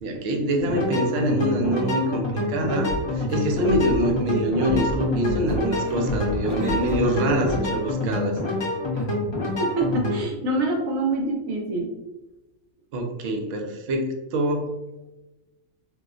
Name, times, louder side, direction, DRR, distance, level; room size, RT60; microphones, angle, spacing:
voice 1, 0.0-8.4 12.9-14.7, right 1 dB, 65° right, 3 dB, 0.7 m, -25 dB
sound 1, 0.6-10.2, left 2 dB, 25° left, 0.7 m, -27 dB
sound 2, 2.3-2.5 2.9-7.7, equal, 70° left, 0.9 m, -31 dB
sound 3, 5.7-9.7, right 1 dB, 25° right, 0.4 m, -41 dB
voice 2, 9.4-11.9, right 2 dB, 85° right, 0 dB, 1.1 m, -26 dB
4.2 x 2.2 x 2.4 m, 1.0 s
omnidirectional pair, 1.4 m